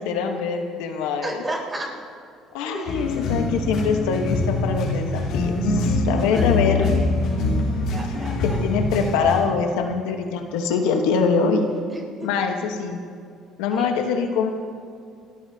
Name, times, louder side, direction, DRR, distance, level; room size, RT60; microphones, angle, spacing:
voice 1, 0.0-1.3 2.5-7.1 8.4-11.7 12.2-13.0 13.6-14.5, left 5 dB, 90° left, 4 dB, 1.2 m, -23 dB
voice 2, 1.2-1.9 2.6-3.3 6.2-7.1 7.9-8.6 11.9-12.3 13.7-13.9, right 1 dB, 25° right, -2 dB, 4.3 m, -34 dB
sound 1, 2.9-9.4, left 2 dB, 70° left, 3.8 m, -24 dB
29.0 x 14.0 x 2.9 m, 2.2 s
cardioid pair, 100°, 0 cm